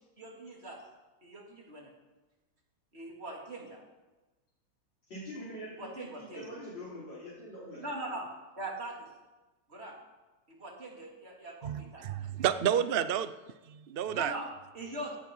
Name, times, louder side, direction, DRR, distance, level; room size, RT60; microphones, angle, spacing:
voice 1, 0.2-0.8 1.2-1.9 2.9-3.8 5.8-6.5 7.8-8.3 8.6-9.1 9.7-9.9 10.5-12.3 14.1-14.5 14.7-15.2, right 2 dB, 35° right, -1 dB, 3.2 m, -41 dB
voice 2, 5.1-6.0 6.3-7.8, equal, 90° left, -10 dB, 5.8 m, -43 dB
voice 3, 11.6-13.3 13.7-14.3, right 9 dB, 65° right, 12 dB, 0.5 m, -30 dB
16.5 x 14.0 x 4.8 m, 1.2 s
omnidirectional pair, 2.0 m